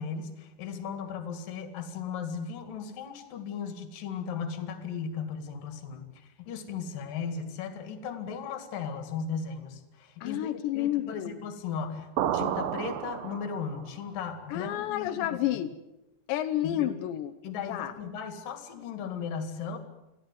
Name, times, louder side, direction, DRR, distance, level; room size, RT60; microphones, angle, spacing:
voice 1, 0.0-15.4 16.6-16.9 17.4-19.8, left 6 dB, 55° left, 9 dB, 3.6 m, -36 dB
voice 2, 10.2-11.4 14.5-15.7 16.3-17.3 17.7-17.9, left 13 dB, 85° left, 9 dB, 3.2 m, -30 dB
sound 1, 12.2-13.9, right 10 dB, 70° right, 2.3 m, -31 dB
25.0 x 16.0 x 9.4 m, 0.96 s
omnidirectional pair, 5.0 m